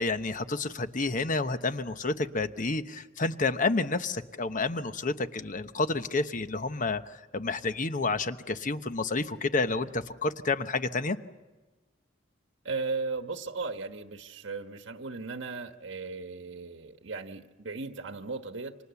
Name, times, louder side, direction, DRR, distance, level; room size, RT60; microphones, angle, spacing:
voice 1, 0.0-7.0 7.3-11.2, left 3 dB, 40° left, 10 dB, 1.0 m, -29 dB
voice 2, 12.6-18.8, right 4 dB, 65° right, 7 dB, 1.3 m, -36 dB
29.5 x 26.5 x 7.1 m, 1.2 s
head